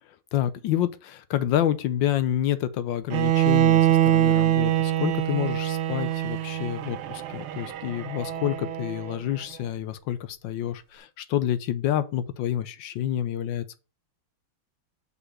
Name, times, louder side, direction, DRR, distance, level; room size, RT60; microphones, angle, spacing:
voice 1, 0.3-13.8, left 11 dB, 70° left, 1.2 m, -28 dB
Bowed string instrument, 3.1-9.1, right 13 dB, 80° right, 1.6 m, -24 dB
5.6 x 4.1 x 6.1 m
omnidirectional pair, 2.3 m